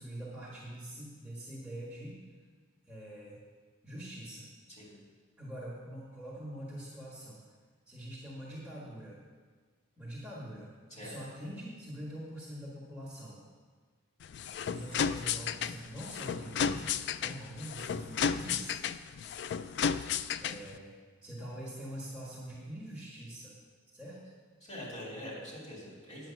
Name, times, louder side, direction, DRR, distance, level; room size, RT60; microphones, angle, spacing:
voice 1, 0.0-2.2 2.9-3.4 3.8-4.5 5.4-7.4 7.9-9.2 10.0-10.7 11.0-13.4 14.7-18.8 20.4-20.9 21.2-23.6 23.9-24.2, right 1 dB, 5° right, -6 dB, 1.6 m, -44 dB
sound 1, 14.2-20.8, left 7 dB, 55° left, 0.3 m, -33 dB
voice 2, 24.6-26.3, left 1 dB, 35° left, -4 dB, 3.2 m, -44 dB
9.6 x 7.9 x 5.8 m, 1.5 s
head